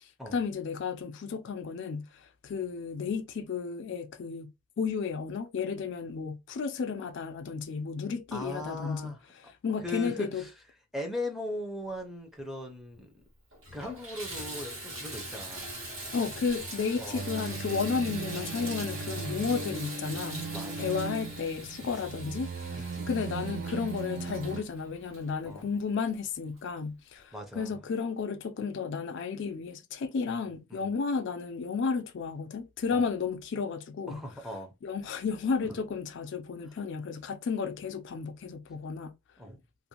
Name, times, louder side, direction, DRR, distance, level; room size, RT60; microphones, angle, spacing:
voice 1, 0.0-9.2 9.6-10.4 16.1-20.5 20.8-34.2 34.8-39.1, left 5 dB, 60° left, 0.4 m, -33 dB
voice 2, 8.3-9.2 9.8-10.5 10.9-13.1 13.7-15.7 17.0-17.2 20.5-20.9 22.7-23.1 25.4-25.7 27.3-27.7 30.3-30.9 32.9-33.1 34.1-34.7 39.4-39.6, left 1 dB, ahead, 0.6 m, -39 dB
Water tap faucet / Bathtub (filling or washing), 12.9-13.0 13.5-25.9 26.6-26.7 27.2-27.3, right 1 dB, 80° right, 1.3 m, -42 dB
sound 1, 17.1-24.6, right 4 dB, 50° right, 0.5 m, -38 dB
2.5 x 2.1 x 2.9 m
head